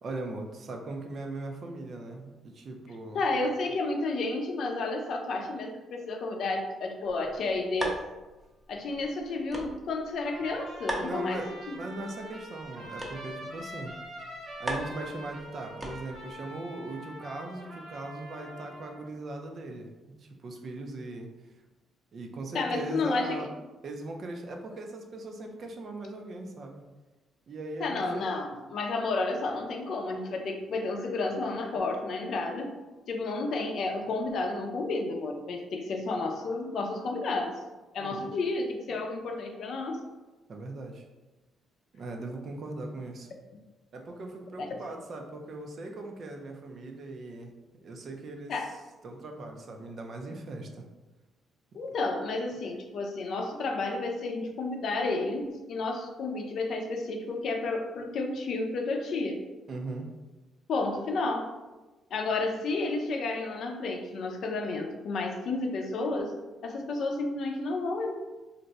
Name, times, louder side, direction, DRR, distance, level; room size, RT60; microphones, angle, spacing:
voice 1, 0.0-3.2 11.0-11.5 11.7-14.0 14.6-19.9 20.2-21.3 22.1-23.5 23.8-26.8 27.5-28.3 38.0-38.3 40.5-41.0 41.9-43.3 43.9-47.5 47.8-48.5 49.0-50.8 59.7-60.1, right 2 dB, 50° right, 3 dB, 0.5 m, -39 dB
voice 2, 3.1-8.0 8.7-11.8 22.5-23.4 27.8-32.8 33.1-37.5 37.9-40.0 44.6-44.7 48.5-48.7 51.7-59.5 60.7-61.5 62.1-66.4 66.6-68.1, left 3 dB, 65° left, 3 dB, 0.5 m, -31 dB
sound 1, 7.1-16.4, right 1 dB, 5° right, 0.6 m, -41 dB
Trumpet, 10.2-19.0, right 1 dB, 70° right, 1.2 m, -44 dB
2.6 x 2.2 x 4.0 m, 1.1 s
cardioid pair, 90°, 0 cm